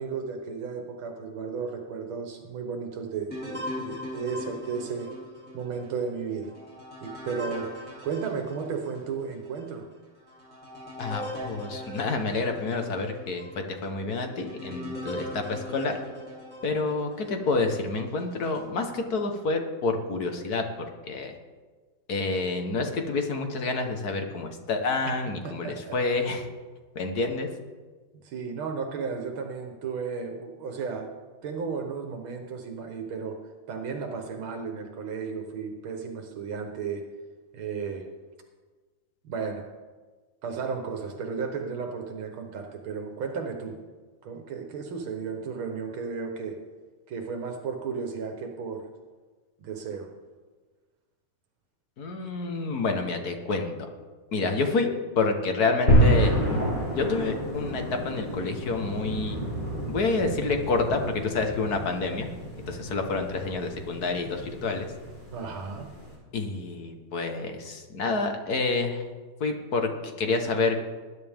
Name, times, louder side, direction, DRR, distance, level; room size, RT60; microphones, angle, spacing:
voice 1, 0.0-5.1 5.5-6.5 7.0-7.7 8.0-9.9 25.4-26.0 28.2-31.1 31.4-33.4 33.7-37.0 37.5-38.1 39.2-39.7 40.4-43.8 44.2-46.6 47.1-48.8 49.6-50.1 65.3-65.9, right 5 dB, 80° right, 4 dB, 2.0 m, -34 dB
sound 1, 3.3-9.1 9.6-9.7 10.3-17.5 18.1-18.7, left 1 dB, 5° left, 3.0 m, -40 dB
voice 2, 11.0-15.9 16.6-20.7 21.1-21.3 22.1-26.5 27.0-27.5 52.0-53.8 54.3-56.3 56.9-59.4 59.9-62.3 62.7-64.9 66.3-69.0 69.4-70.8, left 3 dB, 50° left, 5 dB, 1.7 m, -28 dB
sound 2, 55.9-66.2, equal, 20° left, 3.7 m, -28 dB
20.0 x 10.5 x 3.6 m, 1.4 s
omnidirectional pair, 2.2 m